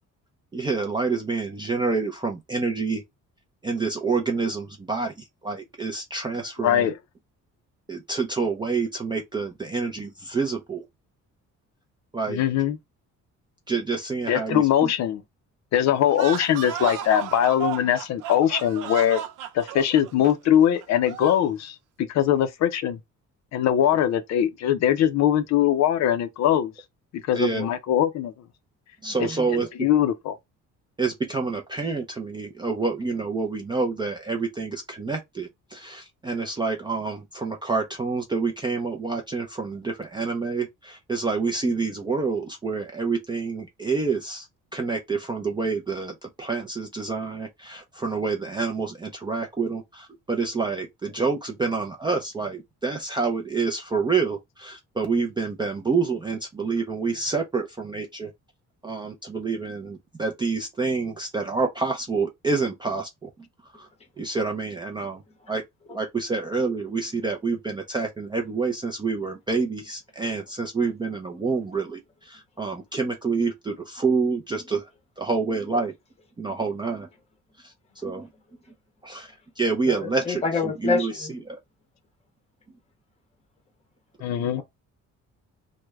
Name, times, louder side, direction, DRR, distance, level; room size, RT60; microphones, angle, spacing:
voice 1, 0.5-3.0 3.6-5.1 5.4-6.9 7.9-10.8 12.1-12.4 13.7-14.6 27.3-27.7 29.0-29.9 31.0-44.5 44.7-58.3 58.8-63.1 63.8-63.9 64.2-65.2 65.5-65.6 65.9-72.0 72.3-74.8 75.2-75.9 76.4-77.1 78.0-78.3 79.0-79.3 79.6-80.4 80.8-81.1 81.5-81.6, right 4 dB, 15° right, 0.4 m, -27 dB
voice 2, 6.6-7.0 12.3-12.8 14.3-15.2 15.7-19.2 19.5-23.0 23.5-26.7 27.3-28.3 29.2-30.4 84.2-84.6, left 10 dB, 60° left, 0.5 m, -22 dB
sound 1, 16.1-21.5, right 10 dB, 85° right, 0.6 m, -34 dB
voice 3, 79.9-81.3 84.6-84.7, left 4 dB, 20° left, 0.8 m, -27 dB
3.2 x 2.1 x 3.4 m
cardioid pair, 175°, 31 cm